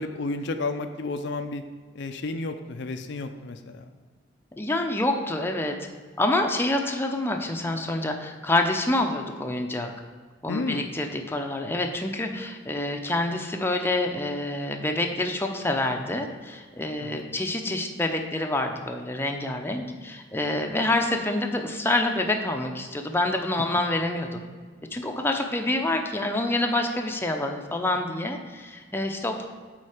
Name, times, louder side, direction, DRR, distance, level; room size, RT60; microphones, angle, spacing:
voice 1, 0.0-1.6 1.9-3.9 10.5-10.9 17.0-17.2, left 3 dB, 70° left, 7 dB, 0.5 m, -32 dB
voice 2, 4.6-5.7 6.2-9.9 10.4-24.4 24.9-29.5, left 2 dB, 10° left, 3 dB, 0.6 m, -27 dB
8.7 x 3.9 x 4.9 m, 1.5 s
head